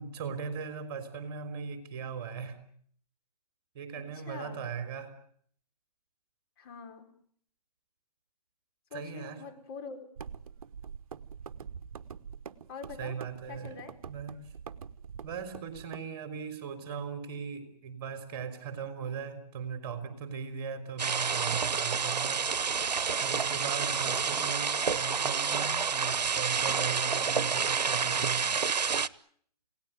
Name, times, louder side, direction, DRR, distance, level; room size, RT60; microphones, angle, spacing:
voice 1, 0.0-2.7 3.7-5.2 8.9-9.4 13.0-13.8 14.0-14.5 15.2-22.5 23.2-28.6, right 6 dB, 35° right, 9 dB, 3.7 m, -38 dB
voice 2, 4.0-4.6 6.6-7.1 8.9-10.0 12.7-13.2 13.5-13.9 23.8-24.1, left 5 dB, 35° left, 4 dB, 4.5 m, -44 dB
sound 1, 10.2-16.0, right 7 dB, 55° right, 1.1 m, -45 dB
sound 2, 21.0-29.1, right 6 dB, 75° right, 1.0 m, -29 dB
29.0 x 18.0 x 9.3 m, 0.63 s
hypercardioid pair, 145°, 21 cm